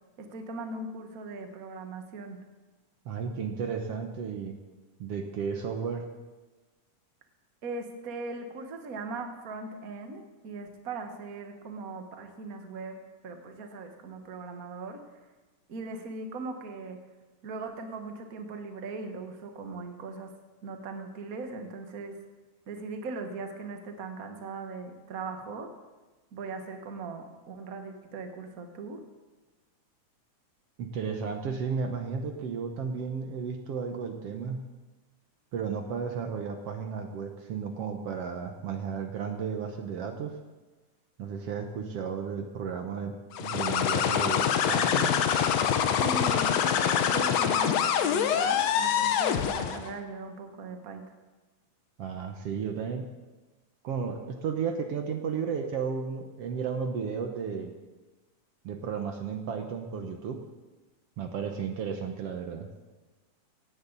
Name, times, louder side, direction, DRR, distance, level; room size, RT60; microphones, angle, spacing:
voice 1, 0.2-2.4 7.6-15.0 15.7-17.0 17.4-20.3 20.6-22.2 22.7-25.7 26.3-29.0 46.0-51.1, right 3 dB, 45° right, 5 dB, 1.2 m, -39 dB
voice 2, 3.1-4.6 5.0-6.1 30.8-34.6 35.5-40.4 41.2-45.1 52.0-53.1 53.8-57.7 58.6-60.4 61.2-62.7, right 6 dB, 65° right, 5 dB, 1.8 m, -33 dB
sound 1, 43.3-49.9, left 8 dB, 70° left, 1.9 m, -25 dB
17.0 x 16.5 x 4.1 m, 1.2 s
omnidirectional pair, 3.5 m